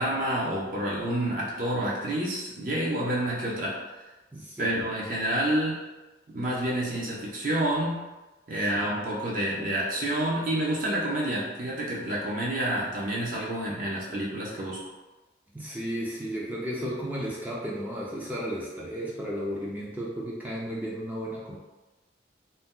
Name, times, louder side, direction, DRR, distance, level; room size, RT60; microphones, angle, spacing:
voice 1, 0.0-3.8 4.6-5.8 6.3-8.1 8.5-14.8, right 1 dB, 50° right, -5 dB, 0.7 m, -28 dB
voice 2, 4.3-4.8 8.8-8.9 15.5-21.6, equal, 10° right, -5 dB, 0.4 m, -34 dB
2.7 x 2.2 x 3.7 m, 1.1 s
head